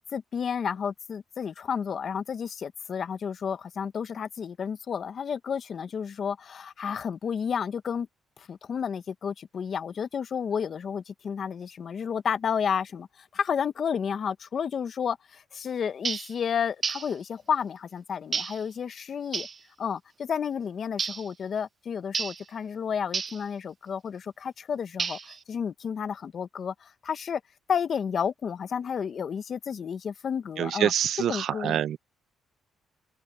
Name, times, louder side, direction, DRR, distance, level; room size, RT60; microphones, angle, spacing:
voice 1, 0.0-8.1 8.4-19.5 19.8-25.2 25.5-27.4 27.7-30.9 31.3-31.8, left 7 dB, 55° left, 1.2 m, -31 dB
sound 1, 16.0-16.3 16.8-17.1 18.3-18.6 19.3-19.6 21.0-21.3 22.1-22.4 23.1-23.4 25.0-25.4, right 5 dB, 40° right, 0.8 m, -31 dB
voice 2, 30.6-32.0, right 10 dB, 70° right, 0.7 m, -26 dB
cardioid pair, 90°, 0 cm